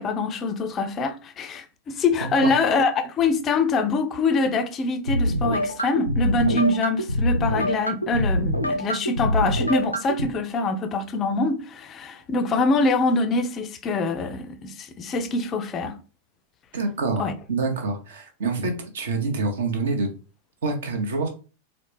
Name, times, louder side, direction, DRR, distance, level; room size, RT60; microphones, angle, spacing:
voice 1, 0.0-16.0 17.2-17.3, left 3 dB, 30° left, 0.4 m, -24 dB
voice 2, 2.2-2.5 16.7-20.1 20.6-21.3, right 3 dB, 60° right, 0.8 m, -26 dB
sound 1, 5.1-10.3, equal, 90° left, 0.4 m, -25 dB
4.1 x 2.0 x 3.2 m
figure-of-eight pair, 90°, 0 cm